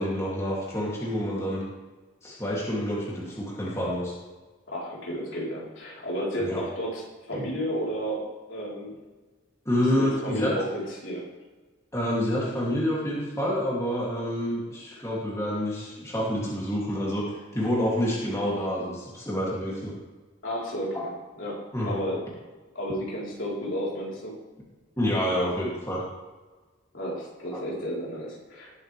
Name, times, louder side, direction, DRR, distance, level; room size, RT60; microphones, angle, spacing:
voice 1, 0.0-1.6 2.2-4.1 6.4-6.7 7.4-7.5 9.6-10.5 11.9-19.9 20.9-21.0 21.7-22.0 25.0-26.0 27.5-27.6, equal, 15° left, -6 dB, 2.9 m, -28 dB
voice 2, 4.7-7.0 7.3-8.9 9.8-11.2 20.4-21.1 21.4-21.6 21.8-22.2 22.7-24.4 26.9-28.8, equal, 65° left, -5 dB, 4.3 m, -32 dB
19.5 x 8.1 x 3.5 m, 1.3 s
head